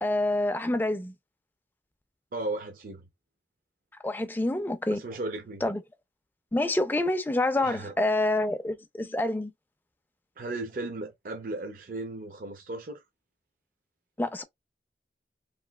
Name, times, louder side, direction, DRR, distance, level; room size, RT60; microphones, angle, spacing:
voice 1, 0.0-1.1 4.0-5.0 5.6-5.8 6.5-9.5 14.2-14.4, left 2 dB, 10° left, 0.3 m, -27 dB
voice 2, 2.3-3.0 4.9-5.6 7.6-7.9 10.4-13.0, right 2 dB, 50° right, 0.5 m, -36 dB
3.0 x 2.6 x 2.2 m
head